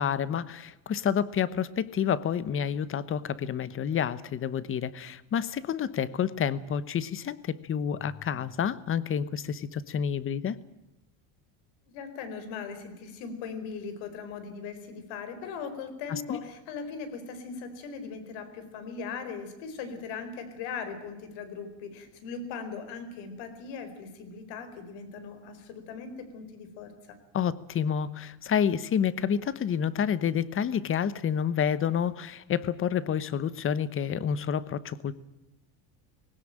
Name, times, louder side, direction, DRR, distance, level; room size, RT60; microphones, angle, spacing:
voice 1, 0.0-10.6 16.1-16.4 27.3-35.1, left 8 dB, 30° left, 17 dB, 1.0 m, -29 dB
voice 2, 11.9-27.2, left 5 dB, 70° left, 10 dB, 4.7 m, -39 dB
20.5 x 18.0 x 8.9 m, 0.97 s
cardioid pair, 155°, 46 cm